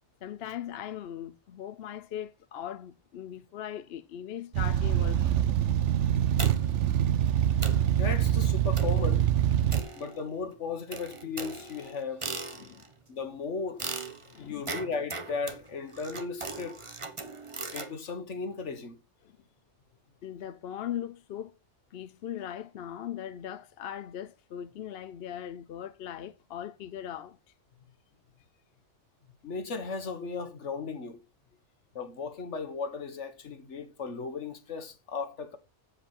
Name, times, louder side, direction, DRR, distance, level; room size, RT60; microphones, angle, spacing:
voice 1, 0.2-5.5 12.6-12.8 14.3-14.8 19.2-19.4 20.2-21.5 21.9-27.4, left 10 dB, 65° left, 0.8 m, -39 dB
sound 1, 4.5-9.8, right 10 dB, 90° right, 1.0 m, -25 dB
sound 2, 6.4-6.9 7.3-7.4 7.6-7.9 8.8-9.1 9.7-10.4 10.9-12.9 13.8-17.9, right 3 dB, 30° right, 1.1 m, -39 dB
voice 2, 8.0-9.3 10.0-12.2 13.1-13.8 14.4-16.8 17.7-19.0 29.4-31.2 31.9-35.6, left 4 dB, 80° left, 1.7 m, -36 dB
8.0 x 7.6 x 4.5 m
omnidirectional pair, 1.2 m